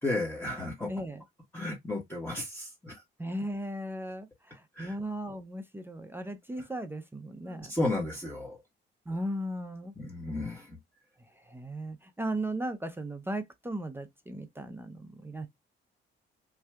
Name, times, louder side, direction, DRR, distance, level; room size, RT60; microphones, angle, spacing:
voice 1, 0.0-0.9 1.5-3.0 4.8-4.9 7.5-8.6 10.0-10.7, left 2 dB, 10° left, 1.1 m, -33 dB
voice 2, 0.9-1.2 3.2-7.7 9.1-9.9 11.5-15.5, right 1 dB, 10° right, 0.5 m, -36 dB
2.7 x 2.3 x 3.3 m
cardioid pair, 90°, 20 cm